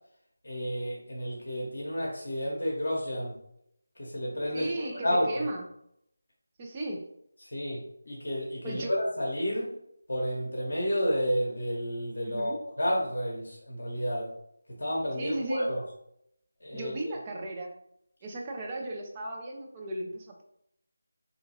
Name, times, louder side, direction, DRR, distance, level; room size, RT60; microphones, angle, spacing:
voice 1, 0.4-3.4 4.0-5.5 7.4-9.7 10.1-14.3 14.8-15.8 16.6-16.9, equal, 55° left, -3 dB, 0.7 m, -31 dB
voice 2, 4.5-5.7 6.6-7.0 8.6-8.9 12.2-12.6 15.2-15.7 16.7-17.7 18.2-20.4, right 1 dB, 20° right, 0 dB, 0.4 m, -36 dB
2.7 x 2.2 x 2.8 m, 0.75 s
figure-of-eight pair, 160°, 0 cm